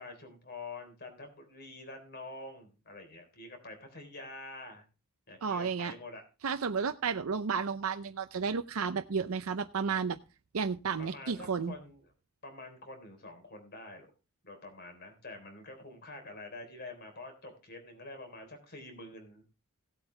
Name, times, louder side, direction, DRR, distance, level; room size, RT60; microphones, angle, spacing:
voice 1, 0.0-4.8 5.3-6.2 11.0-12.1 12.4-14.1 14.4-19.4, left 2 dB, 50° left, 5 dB, 3.7 m, -47 dB
voice 2, 5.4-5.9 6.4-10.2 10.5-11.7, right 5 dB, 75° right, 9 dB, 0.6 m, -32 dB
17.5 x 8.0 x 3.3 m, 0.31 s
head